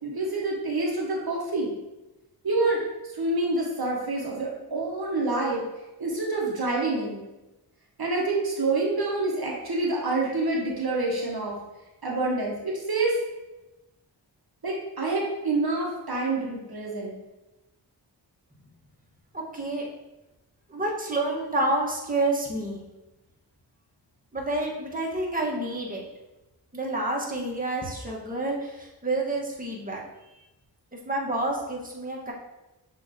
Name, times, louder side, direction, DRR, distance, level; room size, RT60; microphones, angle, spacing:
voice 1, 0.0-1.7 2.4-2.8 3.1-5.6 6.0-7.2 8.0-11.6 12.0-13.2 14.6-17.2, right 2 dB, 55° right, -2 dB, 1.2 m, -27 dB
voice 2, 19.3-19.9 20.7-22.8 24.3-26.0 26.7-30.0 31.1-32.3, right 2 dB, 20° right, -2 dB, 1.2 m, -29 dB
6.9 x 2.8 x 2.7 m, 1.0 s
cardioid pair, 45°, 45 cm